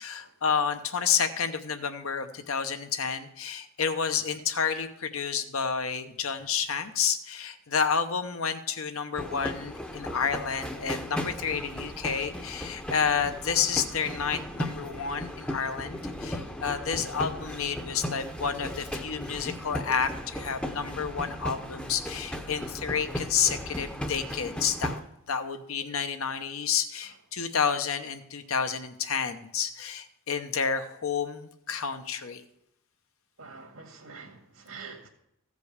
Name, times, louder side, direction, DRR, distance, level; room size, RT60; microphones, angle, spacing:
voice 1, 0.0-25.0 25.3-32.4, left 6 dB, 80° left, 8 dB, 0.9 m, -30 dB
sound 1, 9.1-25.0, equal, 5° left, 0.6 m, -36 dB
voice 2, 33.4-35.1, right 5 dB, 85° right, 3 dB, 2.0 m, -45 dB
15.0 x 5.3 x 6.5 m, 0.80 s
head